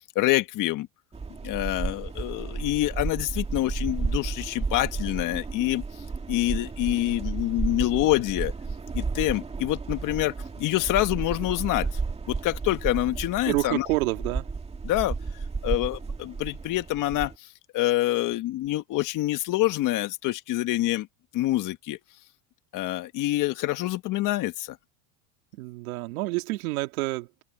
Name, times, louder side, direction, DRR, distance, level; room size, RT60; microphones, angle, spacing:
voice 1, 0.2-0.9 1.4-5.8 6.3-8.5 8.9-11.9 12.3-13.9 14.8-15.1 15.6-17.5 17.7-21.1 21.3-22.0 22.7-24.8, left 16 dB, 50° left, 1.7 m, -26 dB
sound 1, 1.1-17.3, right 4 dB, 15° right, 2.2 m, -33 dB
voice 2, 13.5-14.5 25.5-27.4, right 21 dB, 85° right, 2.3 m, -28 dB
open air
supercardioid pair, 135°, 42 cm